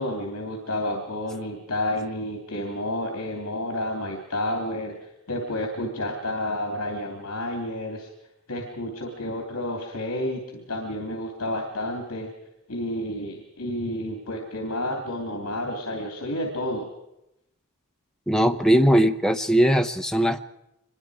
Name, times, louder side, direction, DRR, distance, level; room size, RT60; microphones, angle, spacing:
voice 1, 0.0-8.1 8.5-12.3 12.7-16.9, left 1 dB, 70° left, 2 dB, 3.0 m, -30 dB
voice 2, 18.3-20.4, equal, 5° left, 6 dB, 0.8 m, -20 dB
24.5 x 22.0 x 4.9 m, 0.86 s
head